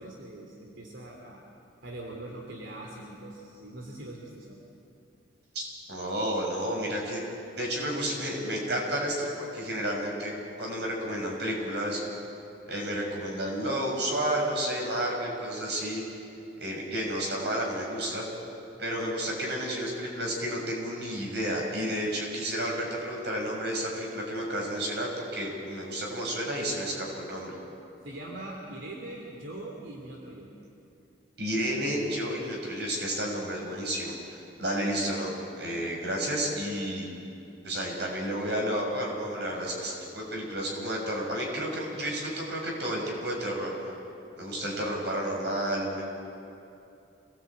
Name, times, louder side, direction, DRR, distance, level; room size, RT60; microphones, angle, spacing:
voice 1, 0.0-1.4 1.8-4.6 28.0-30.5, right 1 dB, 90° right, -1 dB, 3.1 m, -42 dB
voice 2, 5.9-7.2 7.6-12.0 12.7-16.0 16.6-18.3 18.8-27.6 31.4-35.3 35.6-37.1 37.6-43.9 44.4-46.0, right 1 dB, 65° right, -1 dB, 6.5 m, -31 dB
27.0 x 19.0 x 8.7 m, 2.7 s
head